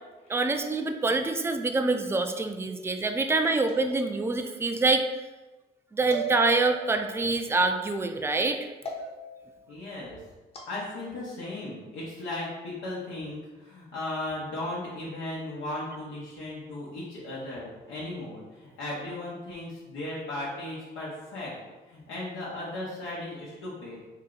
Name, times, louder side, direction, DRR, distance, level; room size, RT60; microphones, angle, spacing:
voice 1, 0.3-5.1 5.9-8.7, right 3 dB, 10° right, 6 dB, 0.3 m, -26 dB
sound 1, 3.7-4.5 6.1-7.1 8.9-9.5 10.5-10.8, right 5 dB, 30° left, 0.8 m, -36 dB
voice 2, 9.7-10.2 10.7-21.6 21.8-24.1, left 1 dB, 90° left, -8 dB, 0.9 m, -36 dB
3.2 x 2.8 x 3.7 m, 1.2 s
cardioid pair, 90°, 20 cm